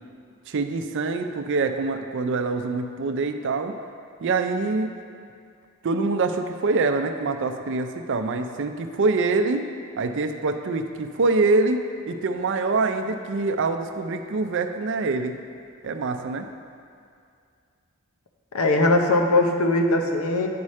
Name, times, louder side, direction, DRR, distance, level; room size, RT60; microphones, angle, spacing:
voice 1, 0.5-3.7 4.2-4.9 5.8-9.6 10.0-15.4 15.8-16.5, right 3 dB, 60° right, 7 dB, 0.5 m, -25 dB
voice 2, 18.5-20.5, left 2 dB, 80° left, 3 dB, 0.7 m, -20 dB
9.5 x 4.9 x 4.2 m, 2.3 s
head